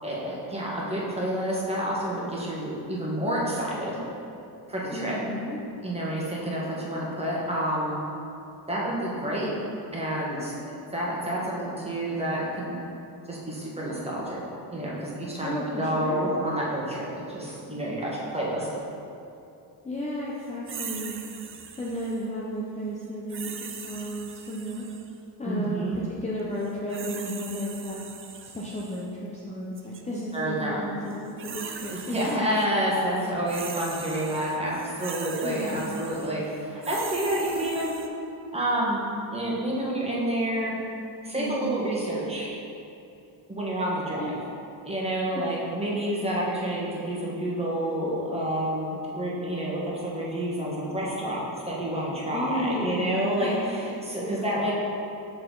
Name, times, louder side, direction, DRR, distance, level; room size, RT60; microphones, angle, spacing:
voice 1, 0.0-4.0 4.7-5.2 5.8-8.0 8.7-9.5 9.9-12.8 13.3-14.4 14.7-18.7 25.4-26.0 30.3-30.8 31.9-38.0 38.5-39.0 39.3-40.7 41.2-42.5 43.5-44.3 44.8-54.7, right 1 dB, 15° right, -6 dB, 1.4 m, -29 dB
voice 2, 4.9-5.6 15.4-16.3 19.8-21.2 21.8-24.8 25.4-28.0 28.4-29.1 29.3-32.4 35.4-36.1 41.3-41.8 44.2-44.3 52.3-53.7 54.3-54.4, equal, 15° left, -6 dB, 0.7 m, -33 dB
sound 1, 20.7-22.3 23.3-25.2 26.6-29.0 29.8-30.0 31.1-32.7 33.0-38.1, right 6 dB, 30° right, 0.4 m, -40 dB
6.5 x 4.3 x 3.9 m, 2.7 s
cardioid pair, 110°, 43 cm